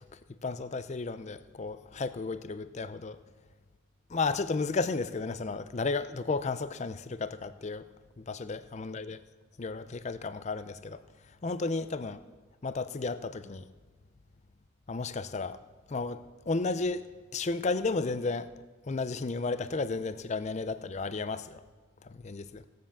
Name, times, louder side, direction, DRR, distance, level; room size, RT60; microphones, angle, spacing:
voice 1, 0.4-3.2 4.1-7.8 8.2-9.2 9.6-11.0 11.4-12.2 12.6-13.6 14.9-15.6 15.9-17.0 17.3-18.5 18.9-21.6 22.0-22.6, left 3 dB, 35° left, 12 dB, 0.5 m, -33 dB
17.0 x 7.5 x 7.2 m, 1.3 s
head